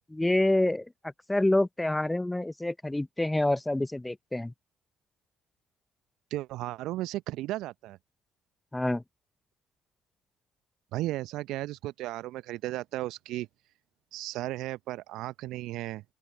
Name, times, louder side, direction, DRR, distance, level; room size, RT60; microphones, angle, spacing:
voice 1, 0.1-0.9 1.3-4.5 8.7-9.0, left 1 dB, 10° left, 1.0 m, -27 dB
voice 2, 6.3-8.0 10.9-13.5 14.1-16.0, right 16 dB, 65° right, 0.8 m, -35 dB
open air
figure-of-eight pair, 45°, 0 cm